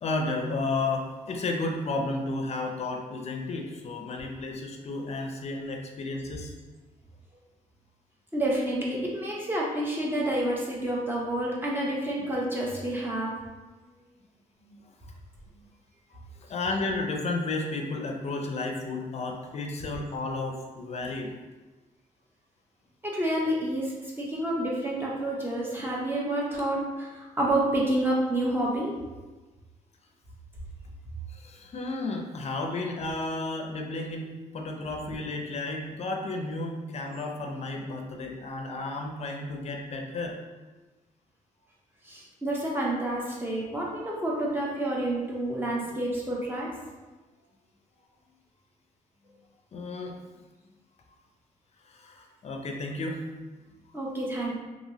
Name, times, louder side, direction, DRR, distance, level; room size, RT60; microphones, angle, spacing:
voice 1, 0.0-6.5 14.6-14.8 16.1-16.2 16.5-21.3 31.3-40.4 49.7-50.2 51.9-53.3, left 2 dB, 50° left, 2 dB, 0.5 m, -32 dB
voice 2, 8.3-13.3 23.0-29.0 42.0-46.7 53.9-54.6, right 1 dB, 15° right, -4 dB, 0.8 m, -29 dB
2.9 x 2.7 x 2.7 m, 1.2 s
cardioid pair, 100°, 14 cm